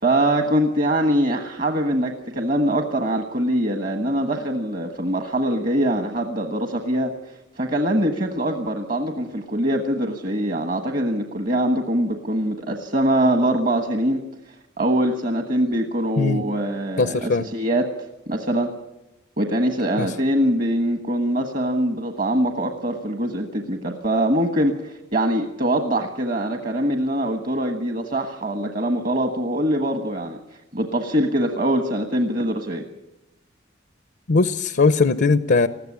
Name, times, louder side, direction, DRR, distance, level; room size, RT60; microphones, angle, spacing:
voice 1, 0.0-14.2 14.8-17.9 18.3-18.7 19.4-30.4 30.7-32.8, right 1 dB, 45° right, 5 dB, 1.4 m, -23 dB
voice 2, 17.0-17.5 20.0-20.1 34.3-35.7, left 3 dB, 55° left, 12 dB, 0.7 m, -19 dB
20.0 x 14.5 x 9.9 m, 0.96 s
head